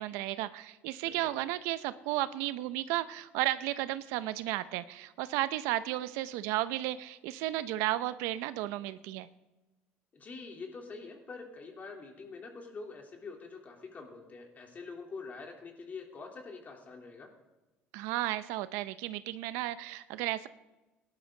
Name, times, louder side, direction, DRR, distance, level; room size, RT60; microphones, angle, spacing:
voice 1, 0.0-9.3 17.9-20.5, right 15 dB, 80° right, 14 dB, 0.6 m, -33 dB
voice 2, 10.1-17.3, left 4 dB, 35° left, 2 dB, 3.2 m, -45 dB
17.0 x 11.5 x 3.9 m, 1.1 s
supercardioid pair, 90°, 5 cm